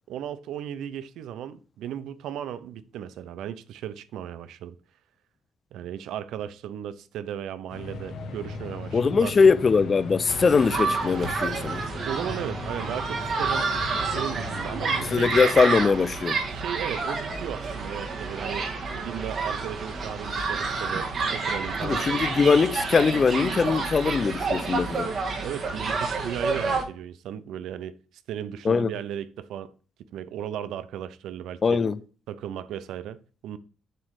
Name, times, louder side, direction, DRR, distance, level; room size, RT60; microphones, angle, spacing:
voice 1, 0.1-4.8 5.7-9.4 12.1-15.3 16.5-18.7 18.9-22.0 25.4-28.0 28.3-29.7 30.1-31.8 32.3-33.6, right 10 dB, 85° right, 0.6 m, -36 dB
sound 1, 7.7-15.6, left 3 dB, 75° left, 1.4 m, -38 dB
voice 2, 8.9-11.8 15.1-16.4 21.8-25.1 28.6-28.9 31.6-32.0, left 5 dB, 40° left, 0.5 m, -21 dB
sound 2, 10.3-26.8, right 4 dB, 55° right, 1.7 m, -29 dB
7.6 x 3.2 x 6.3 m
cardioid pair, 90°, 0 cm